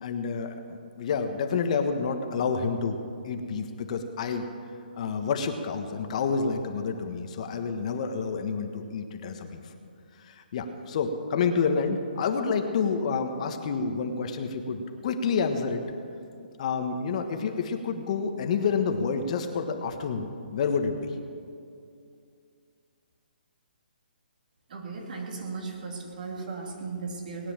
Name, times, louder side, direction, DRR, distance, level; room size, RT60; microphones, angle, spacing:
voice 1, 0.0-3.0 3.2-4.5 5.0-9.6 10.2-15.9 16.6-21.1, left 5 dB, 40° left, 6 dB, 1.3 m, -29 dB
voice 2, 24.7-27.5, right 4 dB, 55° right, 1 dB, 3.0 m, -36 dB
19.5 x 9.7 x 7.5 m, 2.4 s
hypercardioid pair, 160°, 5 cm